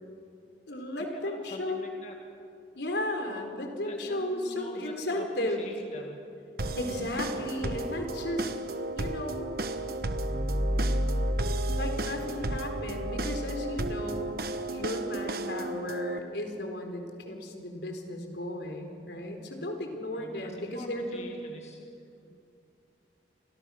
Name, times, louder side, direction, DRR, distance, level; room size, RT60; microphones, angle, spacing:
voice 1, 0.7-1.9 2.8-5.7 6.8-8.5 9.0-9.5 11.8-14.3 14.7-21.4, left 1 dB, 75° left, 4 dB, 4.0 m, -35 dB
voice 2, 1.2-2.2 3.8-6.2 20.1-21.8 22.3-22.4, left 1 dB, 40° left, 1 dB, 2.0 m, -46 dB
sound 1, 6.6-16.2, right 2 dB, 55° right, 1.3 m, -34 dB
sound 2, 9.7-14.3, equal, 5° right, 1.6 m, -31 dB
30.0 x 25.5 x 6.4 m, 2.6 s
head